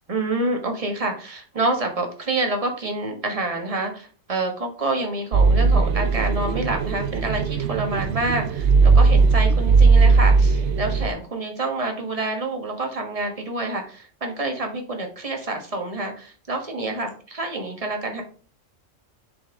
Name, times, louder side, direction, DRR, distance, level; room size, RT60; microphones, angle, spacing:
voice 1, 0.1-18.2, right 2 dB, 25° right, 3 dB, 1.4 m, -27 dB
sound 1, 5.3-11.1, right 4 dB, 65° right, 0.9 m, -18 dB
7.1 x 5.5 x 3.6 m, 0.41 s
omnidirectional pair, 1.4 m